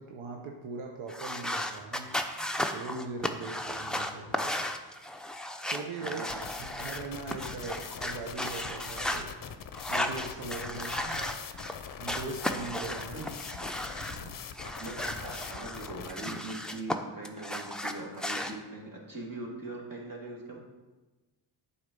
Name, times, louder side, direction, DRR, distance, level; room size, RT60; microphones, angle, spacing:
voice 1, 0.0-2.4 2.7-4.5 5.6-6.2 6.6-9.3 9.9-10.9 12.0-13.3 14.1-14.4, right 4 dB, 85° right, 1 dB, 0.9 m, -40 dB
sound 1, 1.1-7.0 7.3-9.2 9.7-11.7 12.1-14.2 14.5-17.0 17.2-18.5, left 1 dB, ahead, 0.5 m, -35 dB
voice 2, 6.0-6.6 10.9-11.4 13.1-13.7 14.8-20.6, right 2 dB, 45° right, -1 dB, 2.0 m, -42 dB
sound 2, 6.3-16.1, left 7 dB, 45° left, 0.6 m, -43 dB
7.6 x 4.3 x 5.3 m, 1.2 s
cardioid pair, 80°, 47 cm